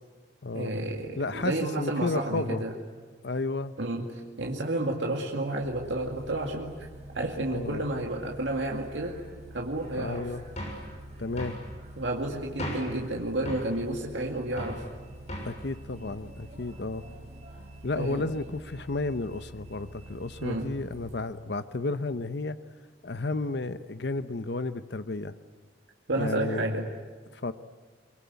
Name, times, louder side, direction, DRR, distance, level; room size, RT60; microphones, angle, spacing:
voice 1, 0.5-2.7 3.8-6.9 7.1-9.2 9.5-10.3 12.0-14.8 18.0-18.3 20.4-20.7 26.1-26.9, right 2 dB, 75° right, 0 dB, 2.2 m, -31 dB
voice 2, 1.1-2.6 3.2-3.7 7.5-7.8 9.9-10.4 11.2-11.6 15.4-17.0 17.8-22.6 23.0-25.3 26.2-26.9 27.3-27.5, left 2 dB, 60° left, 12 dB, 0.8 m, -32 dB
Bus, 5.6-21.2, right 1 dB, 35° right, 5.4 m, -46 dB
sound 1, 10.6-10.9 11.4-11.6 12.6-13.0 13.5-13.7 14.6-14.8 15.3-15.6, equal, 40° left, 7.0 m, -36 dB
23.5 x 23.5 x 9.5 m, 1.5 s
head